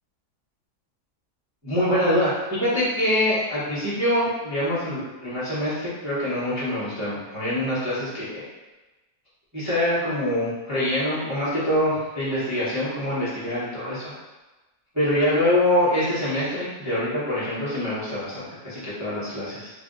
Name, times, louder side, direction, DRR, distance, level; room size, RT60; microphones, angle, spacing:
voice 1, 1.6-8.4 9.5-14.1 14.9-19.7, left 1 dB, 10° right, -12 dB, 1.0 m, -25 dB
3.3 x 2.4 x 3.9 m, 1.1 s
omnidirectional pair, 1.8 m